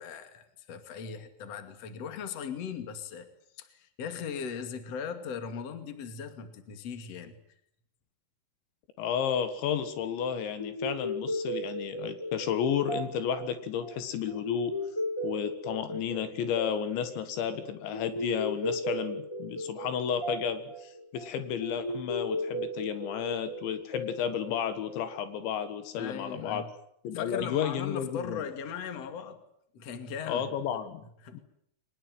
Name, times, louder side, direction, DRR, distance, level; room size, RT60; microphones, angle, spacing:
voice 1, 0.0-3.3 3.5-7.4 25.9-26.7 27.1-29.4 29.7-30.5 31.2-31.4, left 6 dB, 40° left, 8 dB, 2.9 m, -39 dB
voice 2, 9.0-14.8 15.2-26.6 27.1-28.4 30.3-31.1 31.3-31.4, left 8 dB, 75° left, 10 dB, 3.9 m, -32 dB
sound 1, 10.6-25.4, left 1 dB, 20° left, 0.7 m, -36 dB
24.0 x 20.0 x 9.4 m, 0.72 s
omnidirectional pair, 5.4 m